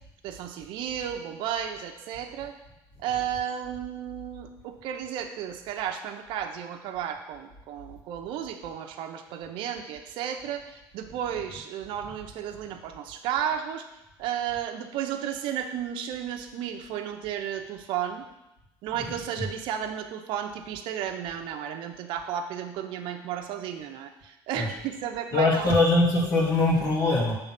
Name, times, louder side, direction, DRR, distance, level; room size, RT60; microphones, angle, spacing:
voice 1, 0.2-2.6 3.0-13.9 14.2-18.3 18.8-25.7, right 9 dB, 75° right, 5 dB, 0.8 m, -33 dB
voice 2, 25.3-27.3, left 2 dB, 45° left, -3 dB, 2.2 m, -22 dB
7.9 x 3.6 x 6.0 m, 0.94 s
cardioid pair, 135°, 9 cm